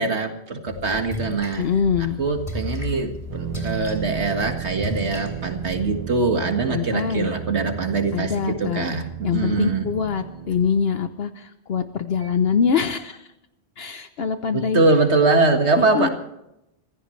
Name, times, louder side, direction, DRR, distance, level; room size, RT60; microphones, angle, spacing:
voice 1, 0.0-1.6 2.2-9.9 14.5-16.1, right 3 dB, 75° right, 5 dB, 2.1 m, -22 dB
Splash splatter, 0.7-6.0, left 1 dB, 30° left, 3.4 m, -34 dB
voice 2, 1.6-2.2 6.7-7.3 8.1-8.9 9.2-13.2 13.8-14.8 15.8-16.1, left 6 dB, 60° left, 9 dB, 1.0 m, -24 dB
sound 1, 3.3-10.7, right 9 dB, 40° right, 0.9 m, -34 dB
25.0 x 15.5 x 3.2 m, 0.85 s
omnidirectional pair, 1.2 m